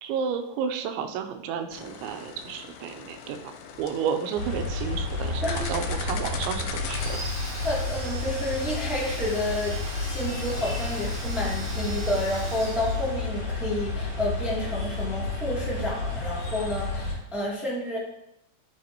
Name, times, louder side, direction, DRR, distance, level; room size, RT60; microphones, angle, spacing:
voice 1, 0.0-3.5 3.8-7.2, right 7 dB, 90° right, 7 dB, 3.0 m, -31 dB
sound 1, 1.7-7.2, left 6 dB, 80° left, 2.8 m, -39 dB
sound 2, 4.4-17.1, left 2 dB, 60° left, 4.5 m, -31 dB
Domestic sounds home sounds, 6.8-13.6, right 1 dB, 30° right, 4.3 m, -40 dB
voice 2, 7.6-18.0, left 1 dB, ahead, -7 dB, 1.0 m, -30 dB
11.0 x 7.7 x 2.9 m, 0.81 s
omnidirectional pair, 5.2 m